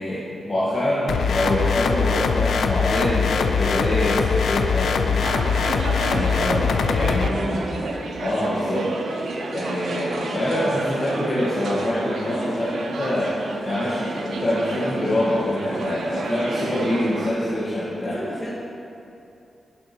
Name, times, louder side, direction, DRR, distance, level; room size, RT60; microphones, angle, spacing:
voice 1, 0.0-5.3 6.0-6.5 6.9-7.3 8.2-8.9 9.5-13.3 13.6-18.2, left 1 dB, 40° left, -9 dB, 1.2 m, -25 dB
sound 1, 1.1-7.3, left 6 dB, 80° left, 0.3 m, -22 dB
sound 2, 5.2-17.3, right 2 dB, 90° right, 0.7 m, -30 dB
voice 2, 6.3-8.0 18.1-18.5, equal, 15° left, -6 dB, 1.0 m, -30 dB
9.6 x 5.6 x 2.8 m, 2.6 s
wide cardioid pair, 135°, 0 cm